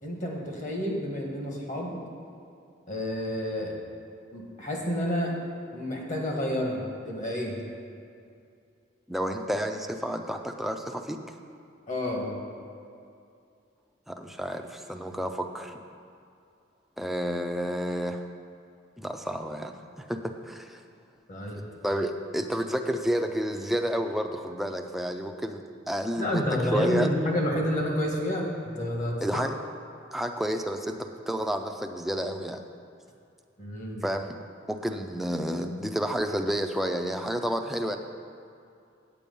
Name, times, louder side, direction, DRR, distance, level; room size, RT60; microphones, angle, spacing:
voice 1, 0.0-2.0 2.9-3.8 4.3-5.4 5.7-7.6 11.9-12.4 21.3-21.6 26.2-29.4 33.6-34.0, equal, 40° left, 0 dB, 1.5 m, -29 dB
voice 2, 9.1-11.2 14.1-15.8 17.0-18.2 19.0-20.8 21.8-27.1 29.2-29.5 30.1-32.6 34.0-34.4 34.7-38.0, equal, ahead, 4 dB, 0.4 m, -30 dB
8.6 x 8.3 x 5.4 m, 2.5 s
head